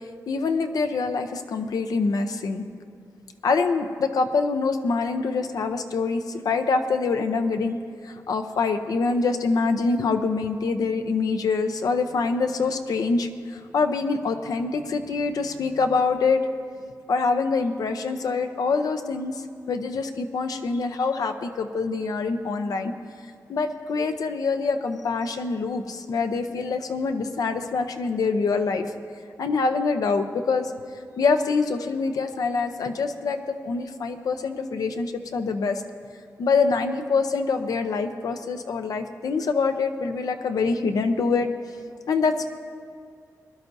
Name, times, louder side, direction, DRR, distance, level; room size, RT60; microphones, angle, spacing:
voice 1, 0.3-2.7 3.4-7.8 8.0-16.4 17.1-22.9 23.5-28.8 29.4-30.7 31.2-35.8 36.4-41.5 42.1-42.4, left 4 dB, 75° left, 7 dB, 0.8 m, -25 dB
21.5 x 11.5 x 2.7 m, 2.2 s
wide cardioid pair, 135°, 6 cm